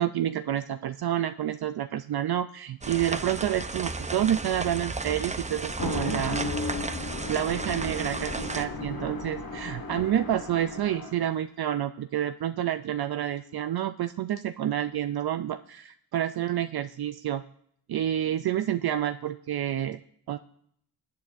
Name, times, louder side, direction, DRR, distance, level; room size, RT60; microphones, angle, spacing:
voice 1, 0.0-6.5 7.3-17.4 17.9-20.0 20.3-20.4, right 11 dB, 60° right, 10 dB, 0.5 m, -29 dB
sound 1, 2.8-8.6, right 3 dB, 15° right, 0.6 m, -34 dB
sound 2, 5.7-11.3, left 3 dB, 50° left, 1.5 m, -35 dB
18.0 x 8.5 x 2.6 m, 0.67 s
cardioid pair, 55°, 43 cm